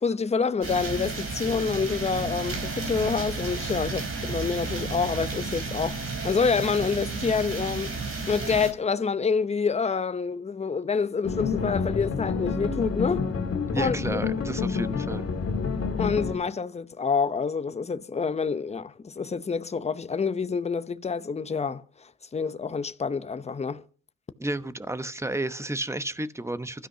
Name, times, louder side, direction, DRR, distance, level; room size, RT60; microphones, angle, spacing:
voice 1, 0.0-8.0 8.2-13.3 13.8-14.2 16.0-23.8, left 5 dB, 20° left, 0.7 m, -27 dB
sound 1, 0.6-8.7, right 3 dB, 45° right, 3.9 m, -32 dB
sound 2, 11.2-16.4, left 5 dB, 50° left, 2.3 m, -28 dB
voice 2, 13.7-15.3 24.4-26.9, right 1 dB, 10° right, 0.9 m, -32 dB
25.0 x 13.0 x 2.8 m
cardioid pair, 90°, 30 cm